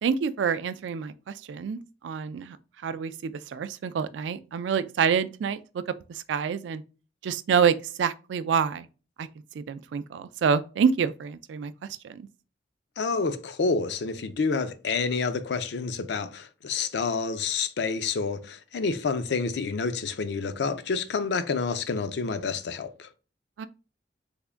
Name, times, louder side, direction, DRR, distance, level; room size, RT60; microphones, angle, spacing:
voice 1, 0.0-2.6 2.8-5.8 6.1-6.8 7.2-8.9 9.2-9.3 9.5-11.7 12.0-12.2 23.6-23.7, right 6 dB, 90° right, 0.3 m, -27 dB
voice 2, 13.0-23.1, left 4 dB, 75° left, 0.4 m, -28 dB
3.5 x 2.1 x 3.4 m
head